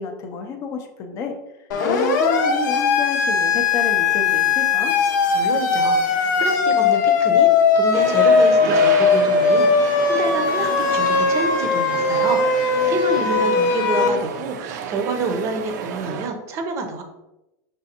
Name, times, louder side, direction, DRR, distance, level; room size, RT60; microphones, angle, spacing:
voice 1, 0.0-1.4 1.8-4.9 13.3-13.5, left 4 dB, 35° left, 5 dB, 0.4 m, -29 dB
Siren, 1.7-14.1, left 5 dB, 90° left, 0.7 m, -19 dB
voice 2, 5.3-7.5 7.8-17.0, right 3 dB, 30° right, 5 dB, 0.6 m, -28 dB
sound 1, 7.9-16.3, right 7 dB, 75° right, 0.5 m, -31 dB
5.2 x 3.2 x 2.8 m, 0.95 s
supercardioid pair, 165°, 10 cm